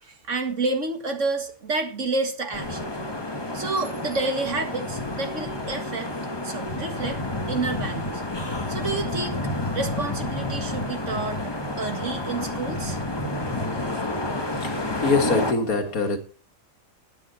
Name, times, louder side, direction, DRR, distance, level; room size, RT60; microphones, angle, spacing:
voice 1, 0.0-2.9 3.5-6.1 6.4-7.2 7.5-8.2 8.7-9.4 9.7-11.4 11.8-13.0, right 3 dB, 60° right, 2.1 m, -29 dB
sound 1, 2.5-15.5, left 1 dB, 20° left, 1.4 m, -30 dB
voice 2, 14.6-16.2, left 3 dB, 85° left, 2.2 m, -24 dB
16.0 x 9.1 x 4.3 m
omnidirectional pair, 1.5 m